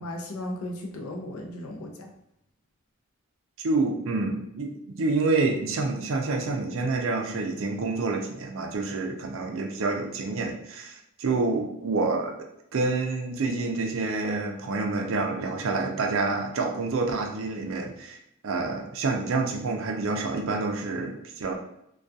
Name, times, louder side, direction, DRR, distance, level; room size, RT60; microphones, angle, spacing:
voice 1, 0.0-2.1, left 1 dB, 85° left, 2 dB, 0.5 m, -36 dB
voice 2, 3.6-12.4 12.7-18.2 18.4-21.5, right 3 dB, 60° right, 3 dB, 0.4 m, -28 dB
2.3 x 2.3 x 2.6 m, 0.77 s
head